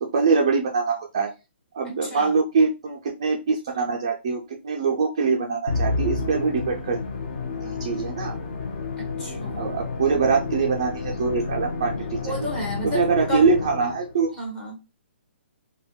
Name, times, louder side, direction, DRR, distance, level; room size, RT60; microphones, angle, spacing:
voice 1, 0.0-1.3 1.7-7.0 7.6-8.4 9.6-12.5 12.8-14.3, right 5 dB, 25° right, 0 dB, 0.3 m, -23 dB
voice 2, 1.8-2.4 9.0-9.8 12.2-13.5 14.4-14.8, left 1 dB, 10° left, -2 dB, 0.8 m, -33 dB
Musical instrument, 5.7-14.2, left 3 dB, 40° left, 0.6 m, -30 dB
4.2 x 2.1 x 2.2 m, 0.27 s
hypercardioid pair, 175°, 7 cm